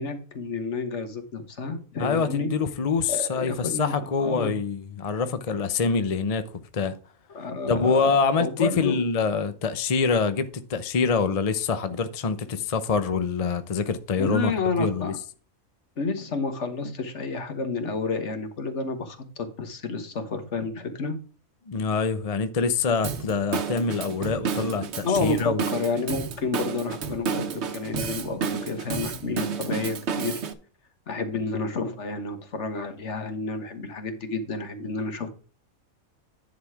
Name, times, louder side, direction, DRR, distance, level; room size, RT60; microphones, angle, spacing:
voice 1, 0.0-2.5 3.1-4.6 7.3-8.1 8.4-9.0 14.2-15.2 16.0-21.2 25.0-30.4 31.1-35.3, left 3 dB, 55° left, 1.5 m, -30 dB
voice 2, 2.0-6.5 6.7-7.0 7.7-15.1 21.7-25.6, left 5 dB, 40° left, 0.6 m, -25 dB
Drum kit / Drum, 23.0-30.5, right 6 dB, 55° right, 1.1 m, -31 dB
10.5 x 4.2 x 4.7 m
omnidirectional pair, 1.4 m